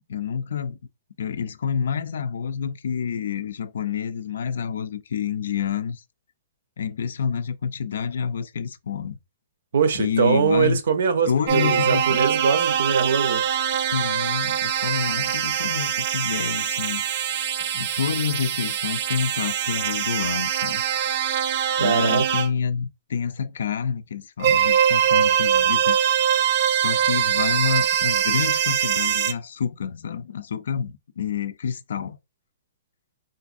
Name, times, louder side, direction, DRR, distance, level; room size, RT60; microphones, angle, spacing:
voice 1, 0.1-0.8 1.2-6.0 6.8-9.2 9.9-10.8 11.3-12.2 13.9-17.1 17.7-20.8 21.8-26.0 26.7-32.2, left 7 dB, 75° left, 0.4 m, -28 dB
voice 2, 9.7-13.4 21.8-22.2, right 6 dB, 70° right, 0.7 m, -22 dB
sound 1, 11.5-22.5 24.4-29.3, right 9 dB, 40° right, 0.3 m, -23 dB
3.8 x 2.5 x 2.5 m
hypercardioid pair, 170°, 0 cm